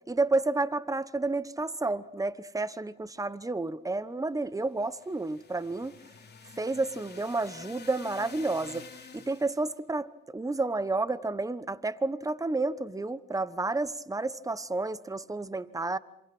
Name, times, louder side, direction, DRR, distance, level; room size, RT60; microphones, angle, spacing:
voice 1, 0.1-6.0 6.6-8.9 9.1-16.0, right 3 dB, 10° right, 16 dB, 1.1 m, -30 dB
sound 1, 4.8-9.7, left 5 dB, 35° left, 3.7 m, -49 dB
27.5 x 27.0 x 6.2 m, 0.79 s
cardioid pair, 90°, 30 cm